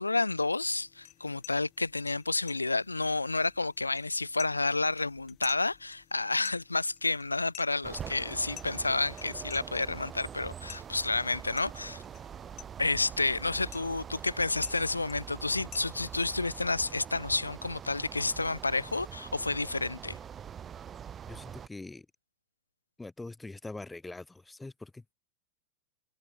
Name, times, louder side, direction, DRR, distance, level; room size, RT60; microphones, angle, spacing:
voice 1, 0.0-12.0 12.8-20.2, left 3 dB, 80° left, 0.7 m, -30 dB
sound 1, 0.6-16.7, left 15 dB, 35° left, 2.1 m, -52 dB
sound 2, 7.8-21.7, right 8 dB, 25° right, 4.8 m, -44 dB
voice 2, 21.2-22.1 23.0-25.1, left 2 dB, 10° left, 3.7 m, -43 dB
figure-of-eight pair, 90°, 0 cm